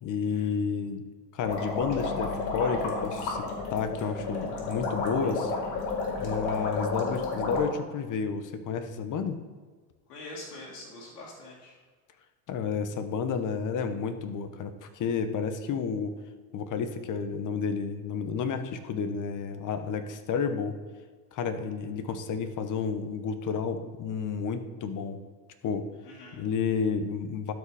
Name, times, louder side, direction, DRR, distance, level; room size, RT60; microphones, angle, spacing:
voice 1, 0.0-1.1 1.3-5.5 6.2-9.4 12.5-16.1 16.5-20.8 21.3-25.2 25.6-25.9 26.3-27.5, left 6 dB, 40° left, 10 dB, 1.0 m, -31 dB
sound 1, 1.4-7.6, left 3 dB, 60° left, 2.6 m, -31 dB
voice 2, 10.1-11.7 26.0-26.4, left 2 dB, 85° left, -5 dB, 2.2 m, -44 dB
12.0 x 5.1 x 4.9 m, 1.4 s
supercardioid pair, 105°, 46 cm